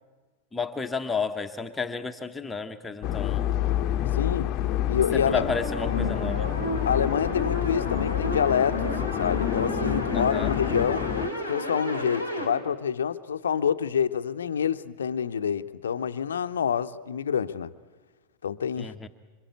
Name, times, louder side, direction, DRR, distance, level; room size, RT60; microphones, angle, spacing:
voice 1, 0.5-3.5 5.1-6.5 10.1-10.5 18.8-19.1, left 5 dB, 10° left, 1.0 m, -32 dB
sound 1, 3.0-11.3, left 12 dB, 35° left, 0.9 m, -28 dB
voice 2, 4.1-4.6 4.9-5.4 6.8-11.1 11.5-17.7 18.4-18.9, left 8 dB, 65° left, 0.8 m, -27 dB
sound 2, 5.2-12.5, equal, 85° right, 4.1 m, -32 dB
27.0 x 26.0 x 8.5 m
figure-of-eight pair, 90°, 0 cm